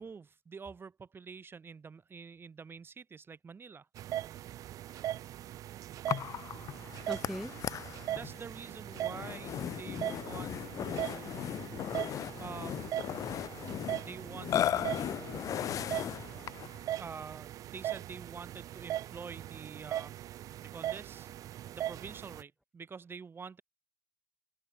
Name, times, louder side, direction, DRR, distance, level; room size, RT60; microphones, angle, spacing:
voice 1, 0.0-3.9 8.0-11.3 12.4-13.0 14.0-15.4 17.0-20.1 20.6-21.3 21.7-23.6, right 5 dB, 35° right, 1.7 m, -47 dB
sound 1, 3.9-22.4, right 12 dB, 60° right, 0.4 m, -40 dB
Burping eructation, 6.1-16.8, left 10 dB, 55° left, 0.7 m, -37 dB
voice 2, 6.7-8.2 11.6-12.4 13.3-14.1 15.8-17.0, equal, ahead, 0.7 m, -48 dB
supercardioid pair, 70°, 7 cm